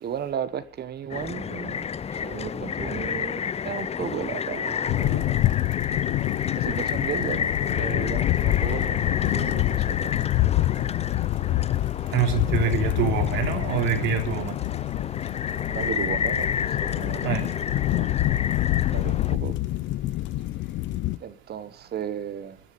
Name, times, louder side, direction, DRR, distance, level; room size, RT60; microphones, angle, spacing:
voice 1, 0.0-1.9 2.2-5.6 6.6-10.1 12.7-12.8 15.7-17.6 17.9-18.4 18.9-19.5 21.2-22.6, right 9 dB, 55° right, 1.5 m, -35 dB
sound 1, 1.1-19.4, left 7 dB, 35° left, 0.6 m, -31 dB
sound 2, 4.9-21.2, left 16 dB, 70° left, 0.7 m, -26 dB
voice 2, 12.1-14.5 17.2-17.4, right 7 dB, 80° right, 3.4 m, -25 dB
15.5 x 10.5 x 5.3 m
supercardioid pair, 75°, 20 cm